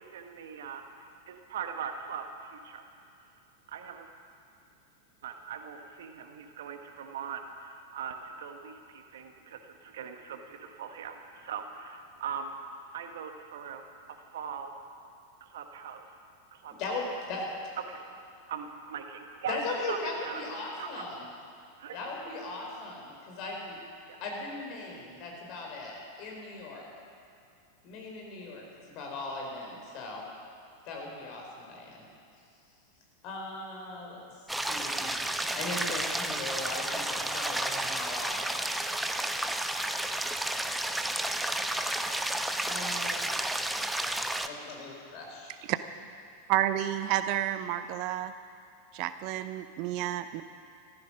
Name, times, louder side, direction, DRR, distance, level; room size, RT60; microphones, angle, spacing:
voice 1, 0.0-2.2 2.5-2.9 3.7-4.1 5.2-12.5 12.9-14.7 15.4-16.1 16.5-16.7 17.9-18.1 18.5-19.6 19.9-20.4 20.8-21.0 21.8-22.0 24.1-24.2, right 7 dB, 65° right, 6 dB, 1.4 m, -41 dB
voice 2, 16.8-17.4 19.5-21.3 21.9-23.8 24.2-26.9 27.8-30.2 30.8-32.0 33.2-38.4 42.6-43.2 44.4-45.5, left 2 dB, 45° left, -1 dB, 4.5 m, -38 dB
sound 1, 34.5-44.5, right 1 dB, 5° right, 0.7 m, -31 dB
voice 3, 46.5-48.3 48.9-50.4, right 12 dB, 50° right, 12 dB, 0.6 m, -30 dB
14.5 x 14.0 x 6.2 m, 2.5 s
figure-of-eight pair, 90°, 0 cm